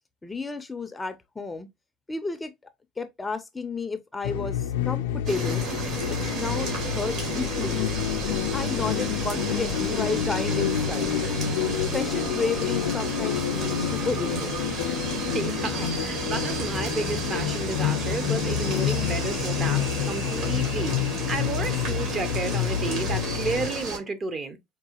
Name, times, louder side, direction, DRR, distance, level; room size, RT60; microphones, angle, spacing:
voice 1, 0.2-1.7 2.1-2.5 3.0-5.6 6.1-7.8 8.5-11.2 11.9-14.6, left 4 dB, 15° left, 0.4 m, -32 dB
sound 1, 4.2-23.7, left 10 dB, 85° left, 0.4 m, -28 dB
sound 2, 5.3-24.0, right 3 dB, 55° right, 2.1 m, -32 dB
voice 2, 15.1-24.6, right 4 dB, 30° right, 0.6 m, -32 dB
4.6 x 2.4 x 2.8 m
supercardioid pair, 115°, 0 cm